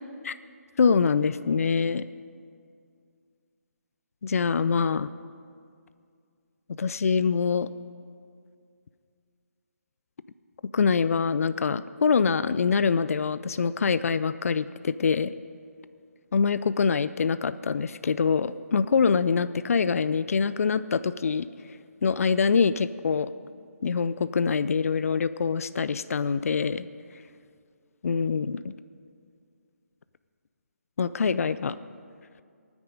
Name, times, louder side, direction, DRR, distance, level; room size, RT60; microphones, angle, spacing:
voice 1, 0.8-2.1 4.2-5.1 6.8-7.7 10.7-15.3 16.3-21.5 22.0-23.3 23.8-26.9 28.0-28.7 31.0-31.8, left 5 dB, 65° left, 14 dB, 0.4 m, -24 dB
20.0 x 9.6 x 5.2 m, 2.3 s
figure-of-eight pair, 150°, 8 cm